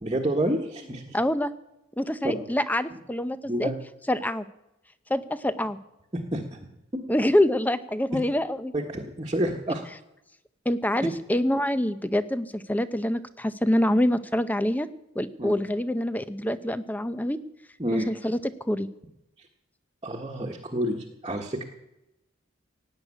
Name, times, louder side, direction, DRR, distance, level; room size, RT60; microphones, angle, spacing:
voice 1, 0.0-1.2 2.2-2.4 3.5-3.8 6.1-6.6 8.7-9.9 15.4-15.5 17.8-18.1 20.0-21.6, right 1 dB, 25° right, -2 dB, 1.4 m, -29 dB
voice 2, 1.1-1.5 2.0-3.7 4.1-4.4 5.1-5.8 7.1-8.7 10.7-14.9 15.2-17.4 17.9-18.9, left 1 dB, 10° left, 13 dB, 0.7 m, -26 dB
17.0 x 6.6 x 9.8 m, 0.89 s
head